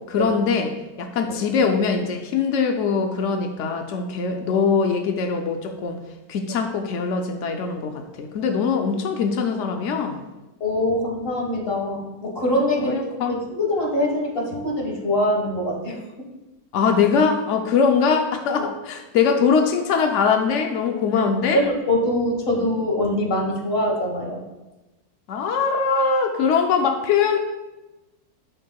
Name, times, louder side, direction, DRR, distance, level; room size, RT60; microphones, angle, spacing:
voice 1, 0.1-0.7 1.0-6.0 6.3-10.2 12.8-13.4 16.7-21.6 25.3-27.4, left 5 dB, 85° left, 4 dB, 0.6 m, -22 dB
voice 2, 10.6-13.0 13.3-16.0 21.1-24.4, left 1 dB, 35° left, 0 dB, 1.5 m, -23 dB
7.9 x 7.8 x 2.3 m, 1.0 s
omnidirectional pair, 2.0 m